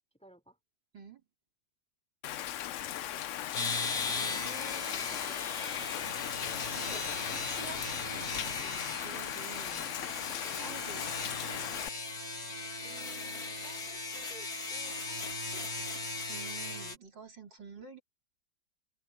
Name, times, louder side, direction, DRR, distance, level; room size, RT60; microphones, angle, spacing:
voice 1, 0.2-0.6 3.6-4.2 4.7-5.4 6.7-7.2 8.6-8.8 10.4-10.7 12.8-15.9, right 1 dB, 5° left, 4.1 m, -56 dB
Rain, 2.2-11.9, left 12 dB, 85° left, 0.6 m, -38 dB
sound 1, 3.5-17.0, left 3 dB, 55° left, 3.2 m, -38 dB
voice 2, 4.1-4.9 6.0-6.3 6.7-7.0 7.5-7.8 8.1-8.7 9.0-9.9 10.6-11.1 16.3-18.0, right 4 dB, 75° right, 4.6 m, -48 dB
omnidirectional pair, 2.0 m